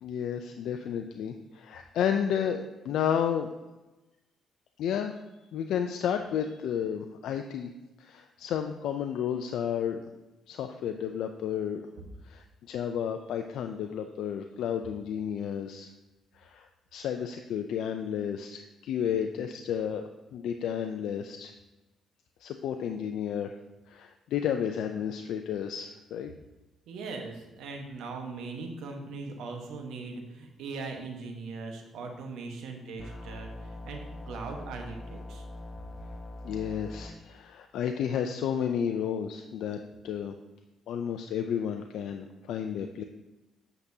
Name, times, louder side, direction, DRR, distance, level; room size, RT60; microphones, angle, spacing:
voice 1, 0.0-3.5 4.8-5.1 5.5-7.7 8.0-10.0 10.5-11.9 12.3-15.9 16.4-16.7 16.9-20.0 20.3-21.5 22.4-23.5 23.9-26.3 36.4-40.3 40.9-43.0, left 8 dB, 80° left, 6 dB, 0.4 m, -32 dB
voice 2, 26.9-35.4, right 4 dB, 85° right, 3 dB, 1.2 m, -40 dB
sound 1, 33.0-37.1, left 1 dB, 25° left, 0.9 m, -42 dB
8.3 x 6.6 x 2.8 m, 1.1 s
cardioid pair, 90°, 0 cm